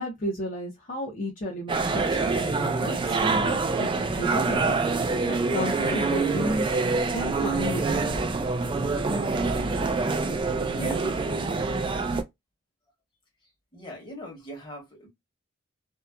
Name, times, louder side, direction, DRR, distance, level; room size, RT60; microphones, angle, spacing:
voice 1, 0.0-8.4 9.3-10.8 11.9-12.1, left 1 dB, 45° left, 0.7 m, -34 dB
sound 1, 1.7-12.2, right 3 dB, 25° right, 0.3 m, -26 dB
voice 2, 10.7-11.3 13.7-15.1, equal, 25° left, 1.4 m, -39 dB
2.8 x 2.3 x 2.3 m
head